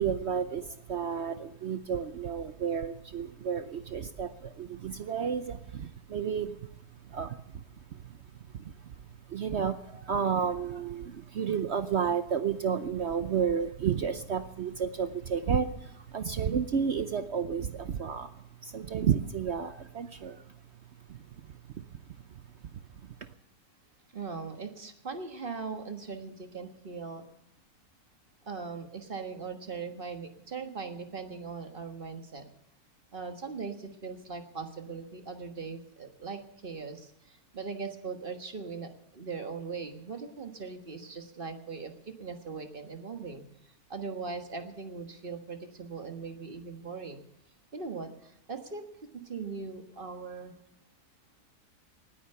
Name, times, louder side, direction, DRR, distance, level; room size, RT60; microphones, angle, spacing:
voice 1, 0.0-6.7 7.1-7.6 7.9-8.2 8.5-20.4 21.1-21.8 22.7-23.2, right 7 dB, 55° right, 11 dB, 0.8 m, -32 dB
voice 2, 24.1-27.2 28.5-32.5 33.1-41.9 42.2-43.4 43.9-47.2 47.7-48.8 49.1-50.5, right 4 dB, 35° right, 7 dB, 1.5 m, -40 dB
19.5 x 9.2 x 6.7 m, 0.81 s
omnidirectional pair, 1.7 m